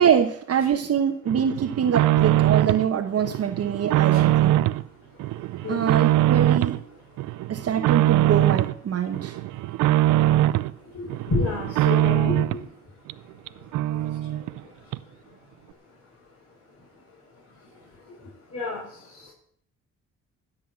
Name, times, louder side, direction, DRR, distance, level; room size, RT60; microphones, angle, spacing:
voice 1, 0.0-4.6 5.7-6.8 7.5-9.4, right 8 dB, 55° right, 4 dB, 1.1 m, -24 dB
sound 1, 1.3-2.9 3.2-4.8 5.2-6.8 7.2-8.7 9.1-10.7 11.1-12.7 13.1-13.2 13.5-13.6 13.7-14.6 14.9-15.0, right 14 dB, 90° right, 0.5 m, -22 dB
voice 2, 11.3-12.4 18.5-18.8, left 3 dB, 55° left, -6 dB, 6.5 m, -27 dB
16.5 x 5.7 x 8.7 m, 0.63 s
cardioid pair, 90°, 30 cm